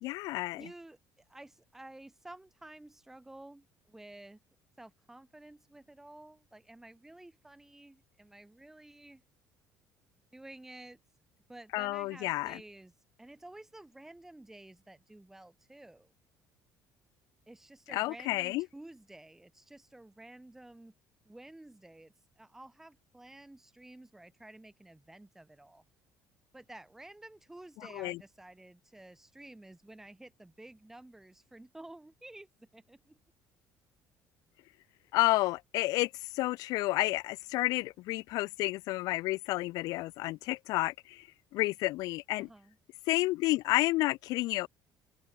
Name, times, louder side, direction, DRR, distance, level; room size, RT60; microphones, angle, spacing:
voice 1, 0.0-0.7 11.7-12.6 17.9-18.6 27.8-28.2 35.1-41.3 41.5-42.5 43.1-44.7, left 19 dB, 65° left, 0.5 m, -30 dB
voice 2, 0.6-4.4 4.8-9.2 10.3-11.2 11.5-16.1 17.5-20.9 21.3-25.8 26.5-33.2 42.4-42.8, right 1 dB, 5° right, 1.9 m, -52 dB
cardioid pair, 165°, 7 cm